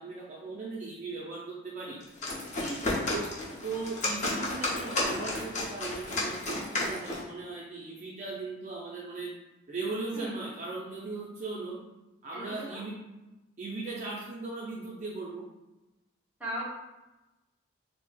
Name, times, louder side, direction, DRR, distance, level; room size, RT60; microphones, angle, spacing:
voice 1, 0.0-2.0 3.1-3.3 3.6-9.3 9.7-11.8 12.2-12.9 13.6-15.5, right 3 dB, 35° right, -5 dB, 0.4 m, -38 dB
sound 1, 2.0-7.3, left 2 dB, 35° left, 0.6 m, -32 dB
voice 2, 2.3-3.0 10.1-10.4 12.3-12.8 16.4-16.6, equal, 5° right, -7 dB, 0.7 m, -39 dB
4.1 x 2.0 x 2.2 m, 1.0 s
head